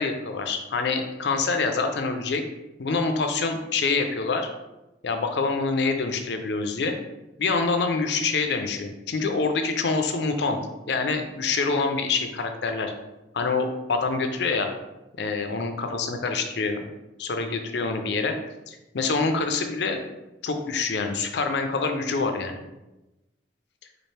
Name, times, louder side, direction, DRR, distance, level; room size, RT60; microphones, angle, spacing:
voice 1, 0.0-2.4 2.8-4.5 5.0-7.0 7.4-10.6 10.9-12.9 13.3-14.7 15.2-16.8 17.2-18.3 18.7-20.0 20.4-22.6, left 4 dB, 70° left, 5 dB, 0.5 m, -26 dB
4.2 x 2.5 x 3.2 m, 1.0 s
head